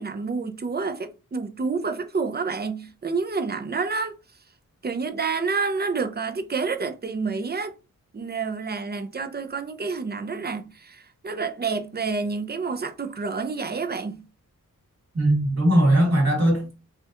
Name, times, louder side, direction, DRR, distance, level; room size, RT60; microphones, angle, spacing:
voice 1, 0.0-4.1 4.8-7.7 8.1-14.2, right 4 dB, 30° right, 0.5 m, -29 dB
voice 2, 15.1-16.8, right 1 dB, 50° right, 2.4 m, -19 dB
5.5 x 2.3 x 2.9 m
wide cardioid pair, 135°, 33 cm